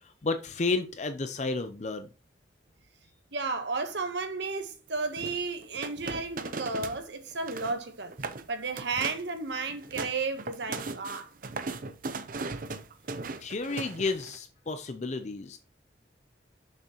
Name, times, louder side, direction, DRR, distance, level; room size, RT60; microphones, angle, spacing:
voice 1, 0.0-2.1 13.4-15.6, left 3 dB, 40° left, 0.5 m, -32 dB
voice 2, 3.3-8.1 8.5-11.3, right 4 dB, 65° right, 1.1 m, -33 dB
sound 1, 5.2-7.0 7.3-7.8 8.1-8.4 8.8-9.3 9.7-14.4, right 3 dB, 45° right, 0.6 m, -37 dB
6.7 x 5.8 x 3.0 m
head